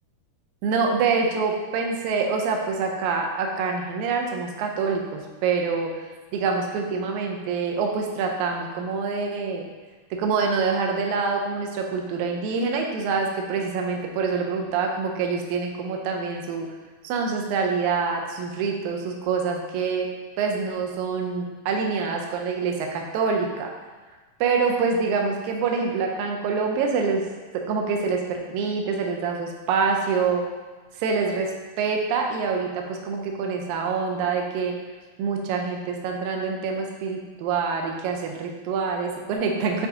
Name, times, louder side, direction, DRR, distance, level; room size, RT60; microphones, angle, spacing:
voice 1, 0.6-9.6 10.1-16.7 17.0-20.1 20.4-23.7 24.4-27.2 27.7-30.5 31.0-34.8 35.2-39.9, right 5 dB, 80° right, 2 dB, 1.7 m, -26 dB
6.8 x 2.6 x 2.7 m, 1.3 s
omnidirectional pair, 3.8 m